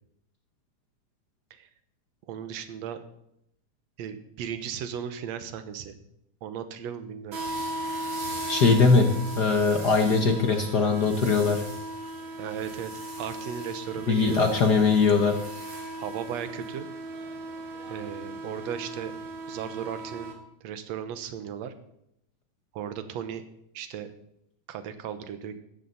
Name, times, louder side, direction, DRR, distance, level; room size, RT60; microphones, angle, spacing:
voice 1, 2.3-3.0 4.0-6.0 6.4-7.4 12.4-12.9 13.2-14.5 16.0-16.9 17.9-19.1 19.5-20.3 20.6-21.7 22.7-23.4 23.7-24.1 24.7-25.6, right 8 dB, 70° right, 10 dB, 2.2 m, -36 dB
sound 1, 7.3-20.3, right 1 dB, 45° right, 3.0 m, -37 dB
voice 2, 8.5-9.1 9.3-11.6 14.1-15.4, left 4 dB, 60° left, 4 dB, 1.1 m, -21 dB
15.5 x 12.5 x 4.2 m, 0.76 s
omnidirectional pair, 3.4 m